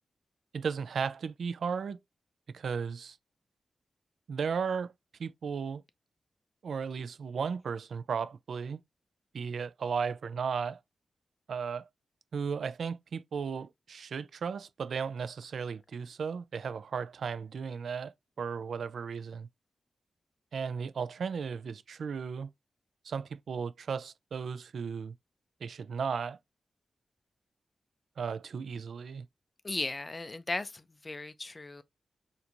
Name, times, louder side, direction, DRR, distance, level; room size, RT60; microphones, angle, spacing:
voice 1, 0.5-2.0 2.5-3.2 4.3-4.9 5.2-5.8 6.6-8.8 9.3-10.8 11.5-11.9 12.3-19.5 20.5-22.5 23.0-25.1 25.6-26.4 28.2-29.3, right 6 dB, 75° right, 0.4 m, -35 dB
voice 2, 29.6-31.8, left 2 dB, 25° left, 0.4 m, -36 dB
4.4 x 2.6 x 2.5 m
wide cardioid pair, 135°, 0 cm